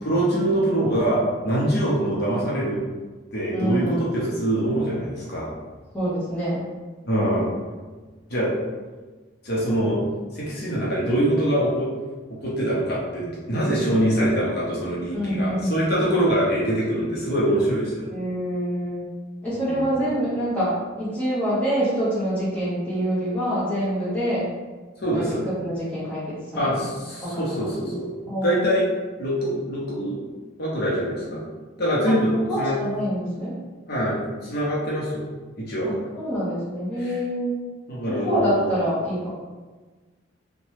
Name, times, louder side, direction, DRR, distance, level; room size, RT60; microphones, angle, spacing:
voice 1, 0.0-2.8 3.3-5.5 7.0-7.5 8.3-8.6 9.4-10.0 10.3-11.9 12.3-18.1 19.7-19.8 25.0-25.4 26.5-28.1 28.4-28.9 29.2-30.2 30.6-31.4 31.8-32.3 32.6-32.8 33.9-35.3 35.6-36.1 37.0-37.2 37.9-38.7, right 1 dB, 50° left, -6 dB, 0.7 m, -24 dB
voice 2, 3.5-4.1 5.9-6.6 13.5-13.7 15.1-15.8 16.1-16.2 18.1-19.1 19.4-24.5 25.1-26.7 27.2-28.0 28.3-28.8 32.1-32.2 32.5-33.6 35.8-37.6 38.1-39.3, equal, 5° left, -10 dB, 0.8 m, -26 dB
2.9 x 2.2 x 3.1 m, 1.3 s
head